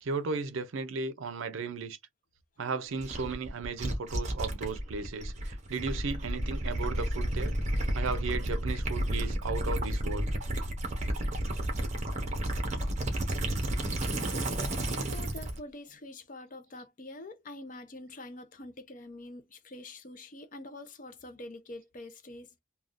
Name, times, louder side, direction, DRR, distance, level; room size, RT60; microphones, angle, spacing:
voice 1, 0.0-2.0 2.6-7.5 7.9-10.3, right 4 dB, 75° right, 0.5 m, -35 dB
Gurgling / Liquid, 3.0-15.6, right 1 dB, 35° right, 0.8 m, -32 dB
voice 2, 15.0-22.6, left 2 dB, 40° left, 0.5 m, -45 dB
3.5 x 2.2 x 2.5 m
head